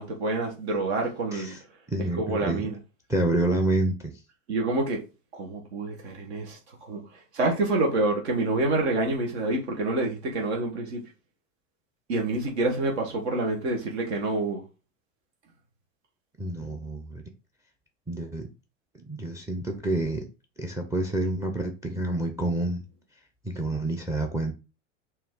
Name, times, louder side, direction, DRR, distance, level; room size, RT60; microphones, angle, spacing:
voice 1, 0.0-1.5 2.0-2.8 4.5-5.0 5.3-6.6 6.9-7.0 7.3-11.0 12.1-14.6, right 2 dB, 60° right, 1.4 m, -27 dB
voice 2, 1.9-2.7 3.1-4.1 16.4-17.2 18.1-18.5 19.1-20.3 20.6-22.8 23.4-24.5, right 1 dB, 10° right, 0.7 m, -28 dB
4.5 x 2.8 x 3.7 m
figure-of-eight pair, 80°, 37 cm